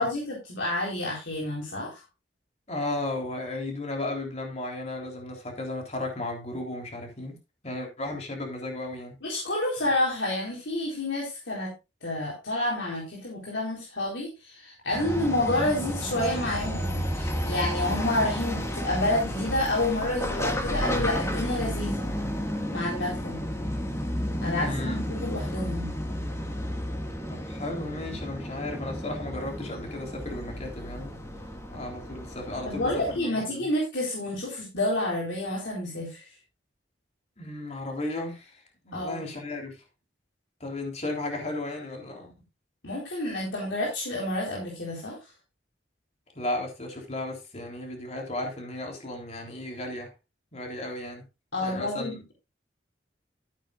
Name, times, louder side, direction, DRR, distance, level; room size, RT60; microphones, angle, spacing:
voice 1, 0.0-2.0 9.2-11.7 12.0-22.1 22.7-23.4 24.4-25.9 32.6-36.3 38.9-39.2 42.8-45.2 51.5-52.3, left 1 dB, 80° left, 3.9 m, -29 dB
voice 2, 2.7-7.4 7.6-9.2 24.6-25.0 27.3-31.1 31.7-33.7 37.4-39.8 40.6-42.3 46.3-50.1 50.5-51.2 51.6-52.2, left 2 dB, 35° left, 3.5 m, -34 dB
sound 1, 14.9-33.2, equal, 15° left, 1.9 m, -32 dB
14.0 x 9.3 x 2.5 m
head